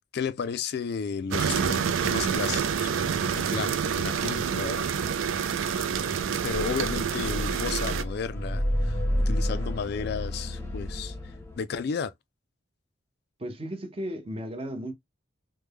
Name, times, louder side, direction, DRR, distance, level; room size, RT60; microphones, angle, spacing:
voice 1, 0.1-2.9 3.3-4.9 6.4-9.0 9.3-12.1, left 6 dB, 55° left, 0.3 m, -33 dB
sound 1, 1.3-8.0, right 7 dB, 80° right, 0.4 m, -27 dB
sound 2, 6.5-11.6, equal, 10° left, 0.7 m, -30 dB
voice 2, 13.4-14.9, equal, 30° right, 0.6 m, -35 dB
3.2 x 2.1 x 3.4 m
head